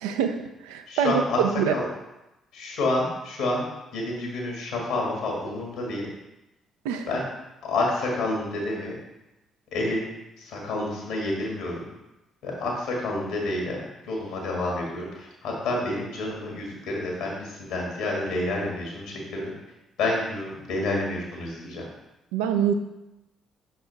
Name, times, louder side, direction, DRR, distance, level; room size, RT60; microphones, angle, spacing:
voice 1, 0.0-0.4 0.6-1.7 6.8-7.1 22.3-22.7, right 8 dB, 70° right, 6 dB, 0.4 m, -24 dB
voice 2, 0.9-1.4 1.7-1.8 2.5-3.6 3.9-6.0 7.1-7.2 7.6-8.9 9.7-10.1 10.4-11.8 12.4-19.5 20.0-21.8, left 2 dB, 65° left, -1 dB, 1.8 m, -29 dB
6.1 x 5.8 x 3.4 m, 0.95 s
figure-of-eight pair, 45°, 0 cm